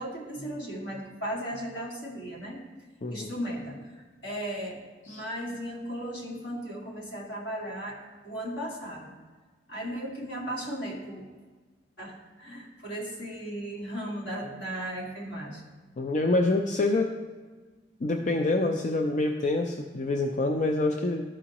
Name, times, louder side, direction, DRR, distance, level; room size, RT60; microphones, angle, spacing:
voice 1, 0.0-2.6 3.1-3.8 4.2-4.8 5.1-8.0 8.2-9.1 9.7-11.2 12.0-15.6, equal, 70° left, -3 dB, 1.9 m, -36 dB
voice 2, 16.0-17.1 18.0-21.2, left 2 dB, 40° left, 3 dB, 0.4 m, -26 dB
13.0 x 4.9 x 2.9 m, 1.4 s
head